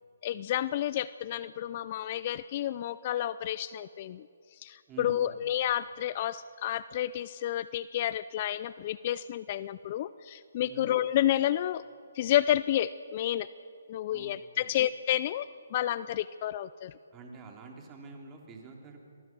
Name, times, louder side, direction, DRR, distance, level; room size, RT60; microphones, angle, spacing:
voice 1, 0.2-4.3 4.6-11.8 12.1-13.5 13.9-16.9, left 12 dB, 40° left, 17 dB, 0.4 m, -30 dB
voice 2, 4.9-5.4 10.6-10.9 14.1-14.7 17.1-19.0, right 3 dB, 20° right, 1 dB, 3.3 m, -47 dB
26.5 x 20.5 x 6.1 m, 2.3 s
hypercardioid pair, 150°, 0 cm